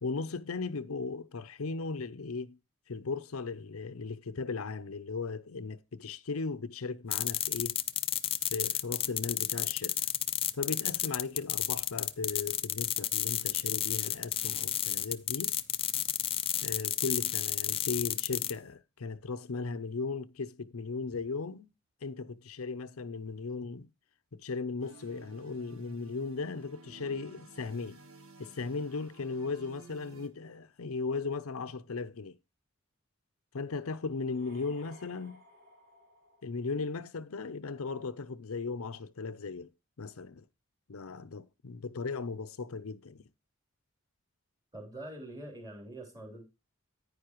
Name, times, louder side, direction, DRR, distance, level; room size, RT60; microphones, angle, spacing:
voice 1, 0.0-2.6 2.9-7.8 8.5-10.0 10.5-15.6 16.6-21.7 22.0-23.9 24.3-28.0 28.4-32.4 33.5-35.4 36.4-39.7 40.0-40.5 40.9-43.2, left 4 dB, 90° left, 0.7 m, -37 dB
sound 1, 7.1-18.5, left 11 dB, 25° left, 0.4 m, -31 dB
sound 2, 24.8-30.3, right 2 dB, 80° right, 1.5 m, -54 dB
sound 3, 34.1-37.1, left 2 dB, 45° right, 3.9 m, -58 dB
voice 2, 44.7-46.4, right 1 dB, 15° right, 3.3 m, -44 dB
9.7 x 9.6 x 3.0 m
head